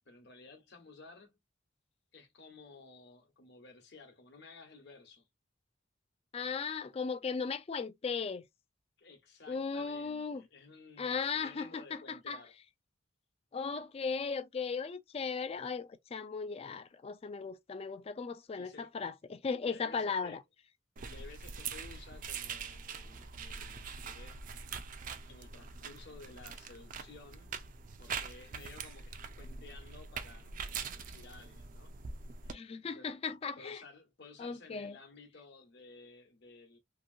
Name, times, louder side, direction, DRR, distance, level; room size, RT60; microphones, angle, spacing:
voice 1, 0.1-1.3 2.1-5.3 9.0-12.5 18.5-18.9 19.6-20.4 21.0-24.4 25.3-27.6 28.0-31.9 32.4-32.6 32.9-33.1 33.6-36.8, left 3 dB, 60° left, 1.0 m, -55 dB
voice 2, 6.3-8.4 9.5-10.4 11.0-12.4 13.5-20.4 32.5-33.8 34.4-35.0, left 5 dB, 30° left, 0.3 m, -37 dB
sound 1, 21.0-32.5, right 5 dB, 45° right, 0.4 m, -43 dB
2.9 x 2.6 x 2.6 m
head